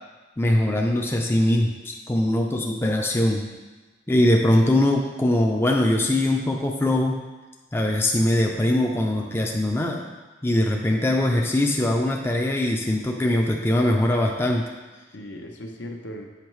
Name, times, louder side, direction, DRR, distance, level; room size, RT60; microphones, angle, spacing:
voice 1, 0.4-3.5 4.1-7.2 7.7-10.1 10.4-14.7, left 1 dB, 15° left, 0 dB, 0.4 m, -22 dB
voice 2, 12.9-14.0 15.1-16.3, left 1 dB, 75° left, 2 dB, 0.8 m, -38 dB
8.0 x 5.4 x 3.1 m, 1.2 s
head